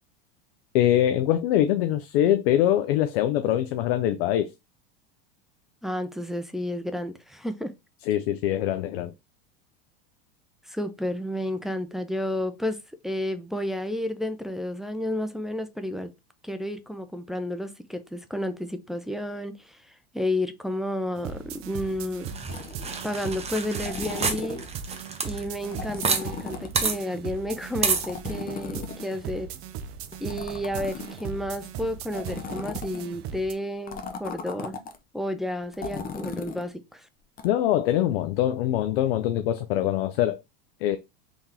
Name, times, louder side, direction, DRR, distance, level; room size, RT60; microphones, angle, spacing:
voice 1, 0.7-4.5 8.1-9.1 37.4-40.4 40.8-41.0, left 12 dB, 70° left, 0.5 m, -23 dB
voice 2, 5.8-7.7 10.7-12.8 13.0-16.1 16.4-22.3 23.0-24.6 25.2-29.5 30.2-34.7 35.1-37.1, left 1 dB, ahead, 0.4 m, -31 dB
sound 1, 21.2-33.5, right 7 dB, 45° right, 0.6 m, -38 dB
sound 2, 22.3-26.2 26.5-26.6 26.8-27.0 27.8-28.1, right 5 dB, 20° right, 0.9 m, -28 dB
sound 3, 22.5-22.9 23.7-24.7 25.6-27.0 28.0-29.4 30.1-31.4 32.1-33.1 33.9-35.0 35.7-36.7 37.4-37.5, left 5 dB, 30° left, 0.7 m, -37 dB
3.6 x 3.5 x 2.9 m
hypercardioid pair, 100°, 30 cm